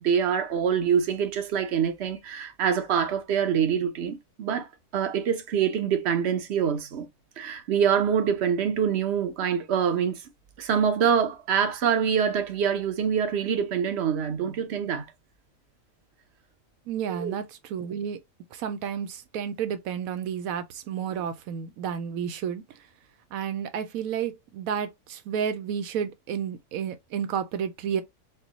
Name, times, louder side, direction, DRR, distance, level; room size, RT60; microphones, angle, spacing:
voice 1, 0.0-4.7 4.9-7.1 7.4-10.2 10.6-15.1 17.1-17.3, right 7 dB, 55° right, 1.0 m, -25 dB
voice 2, 16.9-17.4 17.7-18.2 18.5-22.6 23.3-28.0, right 8 dB, 85° right, 1.0 m, -31 dB
4.4 x 2.1 x 3.9 m
omnidirectional pair, 1.4 m